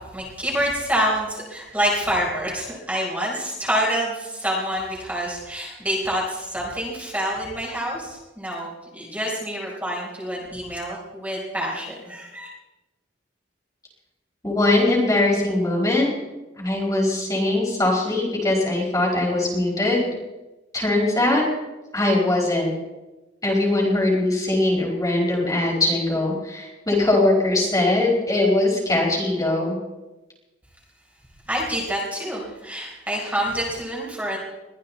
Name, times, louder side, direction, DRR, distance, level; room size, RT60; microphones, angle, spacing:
voice 1, 0.1-12.5 31.5-34.4, equal, 10° right, -4 dB, 4.3 m, -27 dB
voice 2, 14.4-16.1 16.6-20.1 20.7-21.4 21.9-22.7 23.4-29.7, left 2 dB, 20° left, -3 dB, 4.9 m, -21 dB
22.5 x 15.0 x 4.1 m, 1.1 s
head